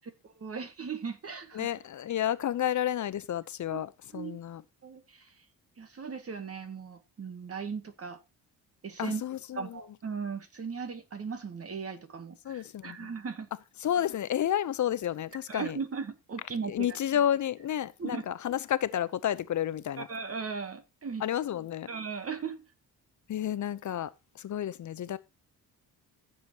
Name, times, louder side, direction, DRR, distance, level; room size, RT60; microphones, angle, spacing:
voice 1, 0.0-1.7 3.7-3.8 4.1-4.3 4.8-5.3 5.8-8.2 8.8-9.2 9.6-13.5 15.5-17.0 18.0-18.2 20.0-21.2 21.9-22.6, right 5 dB, 40° right, 2.0 m, -37 dB
voice 2, 1.5-4.6 9.0-9.8 12.4-13.1 13.8-15.8 16.7-20.1 21.2-21.9 23.3-24.1 24.3-25.2, left 10 dB, 50° left, 0.7 m, -31 dB
15.5 x 7.2 x 2.9 m
cardioid pair, 105°, 37 cm